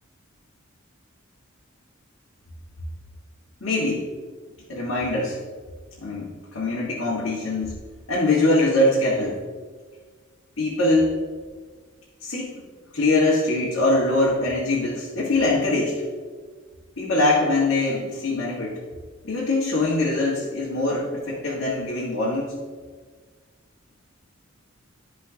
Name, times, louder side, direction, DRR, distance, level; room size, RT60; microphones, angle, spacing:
voice 1, 3.6-4.1 4.7-5.4 6.0-7.7 8.1-9.4 10.6-11.2 12.2-12.6 12.9-16.0 17.0-18.8 19.2-22.5, left 2 dB, 70° left, -7 dB, 1.7 m, -23 dB
13.0 x 5.0 x 2.9 m, 1.5 s
head